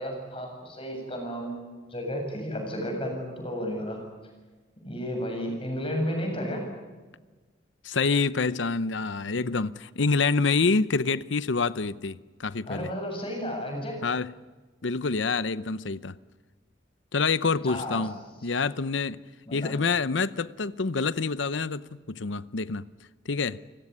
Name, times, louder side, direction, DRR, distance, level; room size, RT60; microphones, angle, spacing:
voice 1, 0.0-1.6 1.9-4.0 4.8-6.6 12.7-14.0 17.6-18.1 19.5-19.7, equal, 30° left, 7.7 m, -32 dB
voice 2, 7.8-12.9 14.0-14.3 14.8-16.1 17.1-19.2 19.5-22.9 23.3-23.6, left 4 dB, 80° left, 0.8 m, -27 dB
30.0 x 17.5 x 9.7 m
head